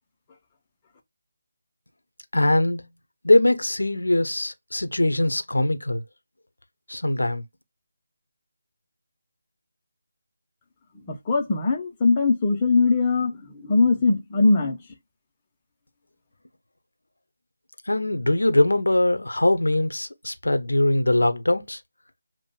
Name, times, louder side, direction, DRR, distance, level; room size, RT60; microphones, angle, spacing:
voice 1, 2.3-2.9 3.2-6.0 6.9-7.4 17.9-21.8, left 1 dB, 80° left, 0.9 m, -22 dB
voice 2, 11.1-14.8, left 3 dB, 20° left, 1.0 m, -21 dB
7.4 x 2.5 x 2.3 m
figure-of-eight pair, 160°, 0 cm